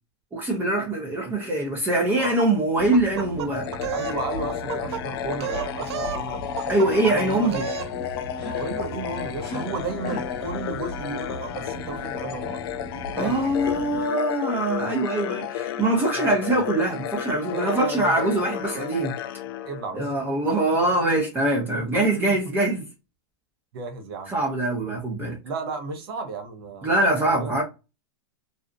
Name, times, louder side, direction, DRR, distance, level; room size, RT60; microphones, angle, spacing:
voice 1, 0.3-3.7 6.7-7.7 13.1-19.1 19.9-22.9 24.3-25.4 26.8-27.6, right 2 dB, 15° right, 0.5 m, -23 dB
sound 1, 2.7-14.0, equal, 40° left, 0.9 m, -38 dB
sound 2, 2.9-4.2 4.5-5.0 5.3-6.2 6.6-7.2 7.4-7.9, right 10 dB, 80° right, 0.4 m, -32 dB
sound 3, 3.5-20.3, left 11 dB, 60° left, 0.4 m, -33 dB
voice 2, 3.9-7.6 8.5-12.6 13.1-13.6 16.1-16.6 17.5-18.3 19.6-20.0 21.7-22.0 22.3-22.4 23.7-24.3 25.4-27.0 27.2-27.6, right 4 dB, 65° right, 0.8 m, -34 dB
2.6 x 2.0 x 2.4 m
supercardioid pair, 150°, 14 cm